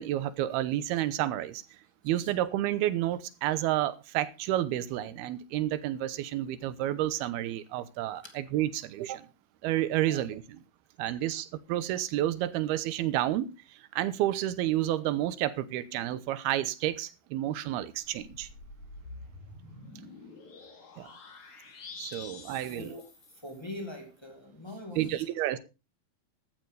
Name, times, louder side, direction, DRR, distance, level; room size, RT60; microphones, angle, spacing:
voice 1, 0.0-1.6 2.0-9.3 9.6-10.6 11.0-18.5 21.0-21.1 22.0-23.0 25.0-25.6, right 13 dB, 80° right, 2.8 m, -30 dB
sound 1, 18.0-23.8, left 3 dB, 50° left, 3.7 m, -48 dB
voice 2, 22.5-23.1 23.4-25.2, left 2 dB, 10° left, 1.4 m, -43 dB
15.0 x 11.5 x 3.4 m
omnidirectional pair, 4.6 m